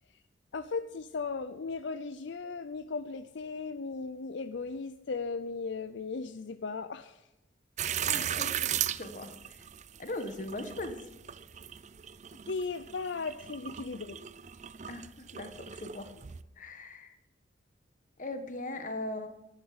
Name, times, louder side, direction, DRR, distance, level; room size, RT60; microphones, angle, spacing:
voice 1, 0.5-7.3 12.5-14.2, left 4 dB, 65° left, 11 dB, 0.5 m, -37 dB
sound 1, 7.8-16.4, right 10 dB, 35° right, 0.4 m, -37 dB
voice 2, 8.1-9.6 10.0-11.0 14.9-16.2 16.6-17.2 18.2-19.3, left 2 dB, 40° left, 8 dB, 1.5 m, -40 dB
11.0 x 11.0 x 7.9 m, 0.99 s
head